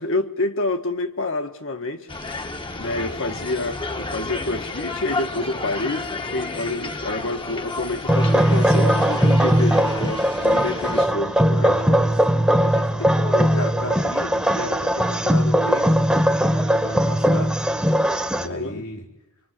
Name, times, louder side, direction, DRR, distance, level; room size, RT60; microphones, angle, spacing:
voice 1, 0.0-2.1 2.8-11.8 18.4-18.8, left 2 dB, 60° left, 1.7 m, -28 dB
sound 1, 2.1-11.1, left 3 dB, 25° left, 1.1 m, -31 dB
voice 2, 2.8-3.4 11.5-17.6 18.3-19.0, left 1 dB, 90° left, 4.9 m, -34 dB
sound 2, 8.1-18.5, equal, 5° right, 1.1 m, -19 dB
25.0 x 25.0 x 7.6 m
head